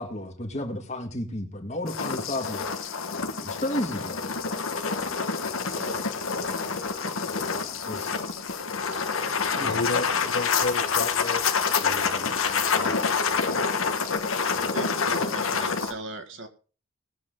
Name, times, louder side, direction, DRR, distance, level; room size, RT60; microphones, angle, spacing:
voice 1, 0.0-2.8 3.4-4.2 7.6-8.2 9.4-10.3, left 1 dB, 30° left, 1.8 m, -33 dB
sound 1, 1.9-15.9, left 5 dB, 80° left, 1.3 m, -27 dB
voice 2, 5.7-6.1 7.9-8.5 8.9-10.1 14.6-16.5, right 2 dB, 65° right, 1.8 m, -41 dB
voice 3, 9.6-11.5 11.8-12.9, left 2 dB, 55° left, 0.8 m, -32 dB
20.0 x 7.5 x 3.7 m
head